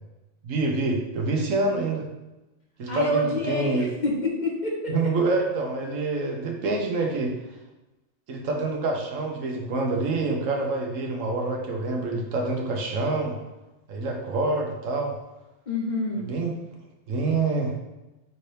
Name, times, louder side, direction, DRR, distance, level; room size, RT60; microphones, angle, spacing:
voice 1, 0.4-2.1 2.8-3.9 4.9-7.3 8.3-13.3 13.9-15.1 16.1-16.5 17.1-17.7, right 3 dB, 85° right, 1 dB, 1.1 m, -26 dB
voice 2, 2.9-4.9 15.7-16.3, left 1 dB, 45° left, -3 dB, 0.7 m, -27 dB
5.5 x 2.7 x 3.2 m, 1.0 s
omnidirectional pair, 1.3 m